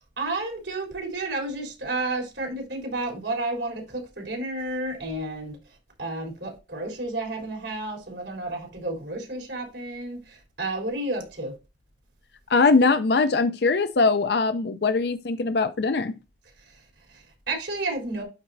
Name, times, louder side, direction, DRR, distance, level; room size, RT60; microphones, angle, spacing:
voice 1, 0.2-11.5 16.6-18.2, right 2 dB, 90° right, 3.6 m, -32 dB
voice 2, 12.5-16.1, left 4 dB, 65° left, 0.5 m, -21 dB
12.5 x 4.1 x 2.6 m
head